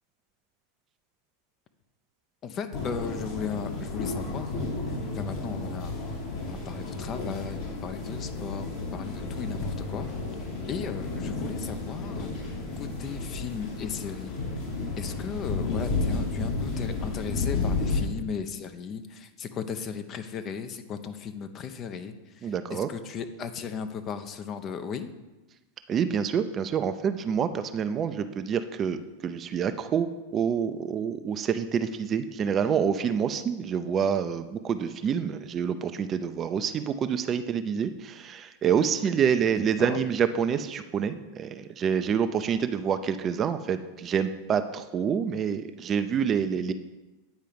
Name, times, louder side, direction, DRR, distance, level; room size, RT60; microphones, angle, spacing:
voice 1, 2.4-6.0 6.5-10.1 10.7-14.3 15.0-25.1 39.6-40.0, left 6 dB, 35° left, 9 dB, 0.7 m, -36 dB
sound 1, 2.7-18.0, left 3 dB, 55° left, 2.3 m, -32 dB
voice 2, 22.4-22.9 25.9-46.7, right 7 dB, 30° right, 10 dB, 0.5 m, -27 dB
9.2 x 4.5 x 5.2 m, 1.1 s
hypercardioid pair, 90°, 0 cm